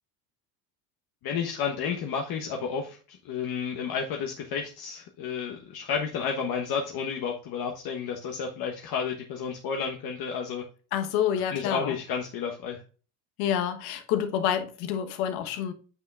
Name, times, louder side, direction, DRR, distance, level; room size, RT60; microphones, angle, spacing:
voice 1, 1.2-10.6 11.5-12.8, left 6 dB, 55° left, 1.2 m, -31 dB
voice 2, 10.9-11.9 13.4-15.7, left 9 dB, 80° left, 1.3 m, -28 dB
9.1 x 5.7 x 2.4 m
supercardioid pair, 95°, 43 cm